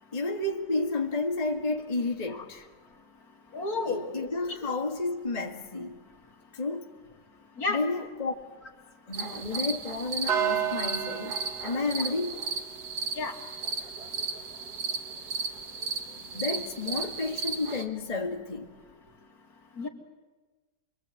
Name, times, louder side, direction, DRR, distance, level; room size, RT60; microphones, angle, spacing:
voice 1, 0.1-2.7 3.8-6.0 6.5-6.9 7.7-8.3 9.1-12.5 16.1-18.7, left 3 dB, 20° left, 1.7 m, -31 dB
voice 2, 3.5-4.1 7.6-8.1 13.2-13.3 19.8-19.9, left 3 dB, 55° left, 3.0 m, -31 dB
sound 1, 9.1-17.8, right 6 dB, 65° right, 2.1 m, -33 dB
27.5 x 23.0 x 8.3 m
omnidirectional pair, 1.9 m